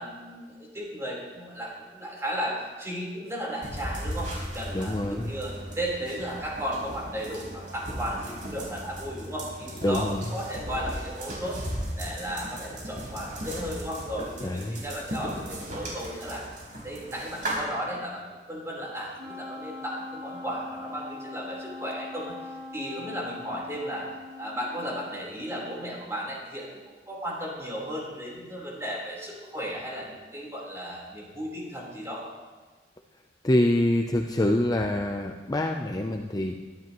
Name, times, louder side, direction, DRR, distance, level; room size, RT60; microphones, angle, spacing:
voice 1, 0.0-24.1 24.4-26.7 27.1-32.3, equal, 15° right, -4 dB, 4.0 m, -35 dB
sound 1, 3.6-17.6, equal, 45° right, 4.4 m, -37 dB
voice 2, 4.7-5.3 9.8-10.2 14.4-14.8 33.4-36.6, left 1 dB, 20° left, 3 dB, 0.6 m, -25 dB
Wind instrument woodwind instrument, 19.1-25.3, left 3 dB, 85° right, 2.4 m, -41 dB
22.5 x 12.0 x 3.1 m, 1.4 s
head